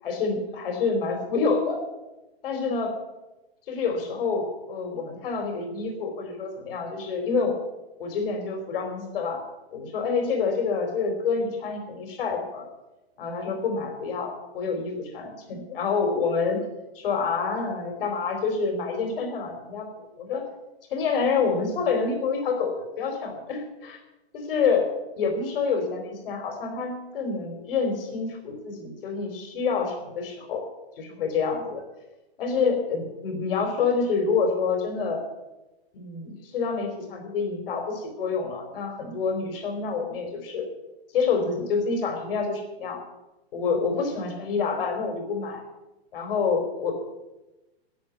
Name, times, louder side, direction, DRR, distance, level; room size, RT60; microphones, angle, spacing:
voice 1, 0.0-1.8 2.4-3.0 3.7-7.6 8.0-9.4 9.7-12.6 13.2-16.6 16.9-20.4 20.9-24.0 24.3-24.9 25.2-30.6 31.0-31.8 32.4-35.2 35.9-40.7 41.1-43.0 43.5-45.6 46.1-46.9, left 5 dB, 60° left, 4 dB, 4.3 m, -27 dB
11.5 x 8.4 x 9.5 m, 1.0 s
hypercardioid pair, 150°, 32 cm